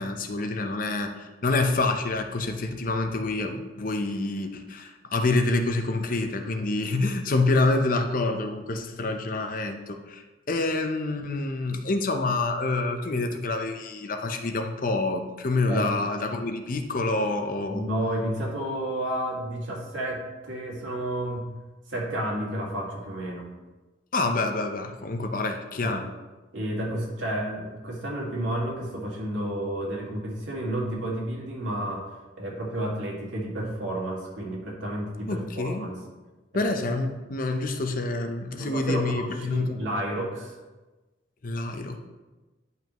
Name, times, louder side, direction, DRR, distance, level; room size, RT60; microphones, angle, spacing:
voice 1, 0.0-17.8 24.1-26.0 35.3-35.9 36.5-39.9 41.4-42.0, left 2 dB, 45° left, 5 dB, 0.7 m, -27 dB
voice 2, 17.7-21.4 21.9-23.5 25.8-26.1 26.5-32.1 32.4-36.0 36.6-36.7 38.6-40.6, right 1 dB, 85° right, -2 dB, 2.1 m, -31 dB
10.5 x 5.6 x 3.0 m, 1.2 s
head